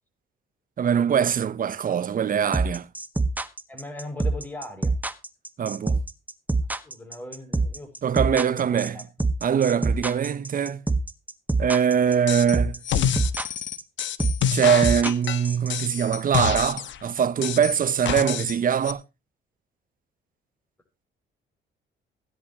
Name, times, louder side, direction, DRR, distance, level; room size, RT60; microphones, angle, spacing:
voice 1, 0.8-2.9 5.6-6.0 8.0-9.0 9.4-10.8 11.6-12.8 14.5-19.0, right 8 dB, 45° right, 0.8 m, -22 dB
sound 1, 2.5-15.7, right 3 dB, 10° right, 1.4 m, -25 dB
voice 2, 3.7-5.0 6.8-7.9 8.3-9.0, left 2 dB, 10° left, 5.6 m, -39 dB
sound 2, 12.3-12.6 12.8-17.0 17.4-18.6 18.8-18.9, left 9 dB, 70° left, 1.1 m, -27 dB
16.5 x 10.5 x 2.9 m
cardioid pair, 90°, 20 cm